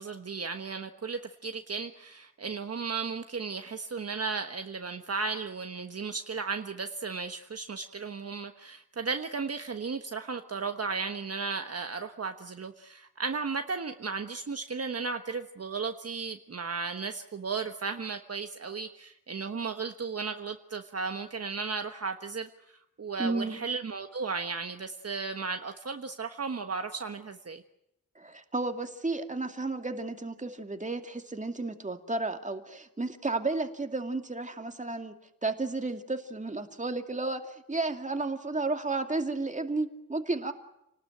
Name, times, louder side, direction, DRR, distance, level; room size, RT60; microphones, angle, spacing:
voice 1, 0.0-27.6, right 4 dB, 45° right, 6 dB, 1.3 m, -35 dB
voice 2, 23.2-23.6 28.2-35.1 35.4-40.5, right 3 dB, 20° right, 6 dB, 2.4 m, -32 dB
29.5 x 19.5 x 9.1 m, 0.85 s
wide cardioid pair, 140°, 34 cm